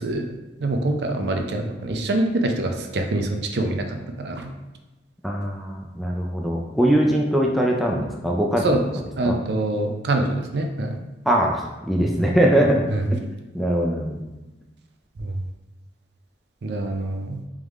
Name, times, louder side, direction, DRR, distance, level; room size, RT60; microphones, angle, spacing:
voice 1, 0.0-4.5 8.6-11.0 12.0-12.2 12.9-13.0 15.2-15.4 16.6-17.4, right 2 dB, 65° right, 4 dB, 0.5 m, -25 dB
voice 2, 5.2-8.6 9.2-9.4 11.3-12.8 13.5-14.2, right 1 dB, ahead, -1 dB, 0.3 m, -21 dB
3.5 x 3.5 x 3.1 m, 1.1 s
head